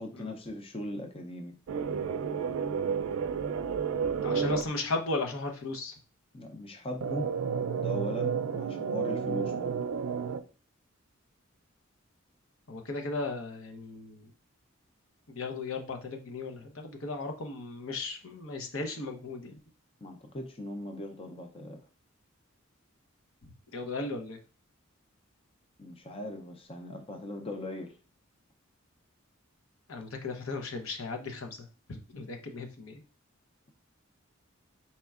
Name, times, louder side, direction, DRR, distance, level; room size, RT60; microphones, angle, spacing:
voice 1, 0.0-1.5 6.3-7.3 7.8-9.8 20.0-21.8 25.8-27.9, left 1 dB, 25° left, 4 dB, 0.5 m, -39 dB
sound 1, 1.7-4.6 7.0-10.4, right 6 dB, 80° right, 0.4 m, -31 dB
voice 2, 4.2-6.0 12.7-14.3 15.3-19.6 23.4-24.4 29.9-33.0, left 3 dB, 85° left, 3 dB, 0.8 m, -36 dB
4.3 x 4.3 x 2.4 m, 0.34 s
head